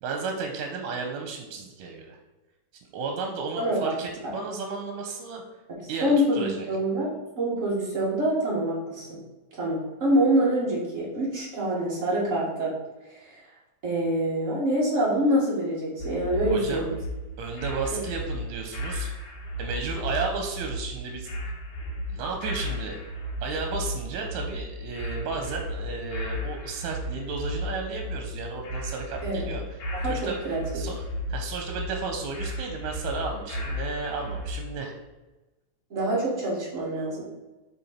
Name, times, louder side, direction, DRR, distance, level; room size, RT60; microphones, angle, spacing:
voice 1, 0.0-2.2 2.9-5.4 5.9-6.7 16.5-16.9 17.4-19.1 19.6-21.3 22.1-23.0 23.4-29.8 30.0-30.4 30.7-31.0 31.3-34.9, right 4 dB, 90° right, 3 dB, 2.1 m, -33 dB
voice 2, 3.6-3.9 6.0-7.1 7.4-9.2 9.6-12.7 13.1-13.4 13.8-17.0 17.9-18.0 29.2-29.5 30.0-30.1 30.4-30.9 35.9-37.2, right 1 dB, 30° right, -6 dB, 2.1 m, -25 dB
sound 1, 16.0-34.7, left 1 dB, 80° left, 2.4 m, -34 dB
6.8 x 3.8 x 4.3 m, 1.1 s
omnidirectional pair, 3.4 m